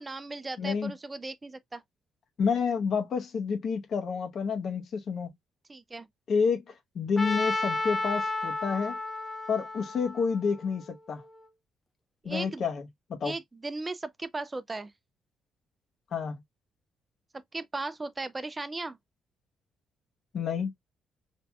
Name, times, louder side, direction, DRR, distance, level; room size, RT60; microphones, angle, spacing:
voice 1, 0.0-1.8 5.7-6.1 12.2-12.7 13.2-14.9 17.5-19.0, right 2 dB, 20° right, 0.4 m, -37 dB
voice 2, 0.6-0.9 2.4-5.3 6.3-8.9 9.5-11.2 12.2-12.8 13.1-13.3 16.1-16.4 20.3-20.7, left 5 dB, 60° left, 0.9 m, -29 dB
Trumpet, 7.2-11.2, left 2 dB, 20° left, 0.7 m, -33 dB
4.5 x 2.6 x 2.2 m
cardioid pair, 90°, 0 cm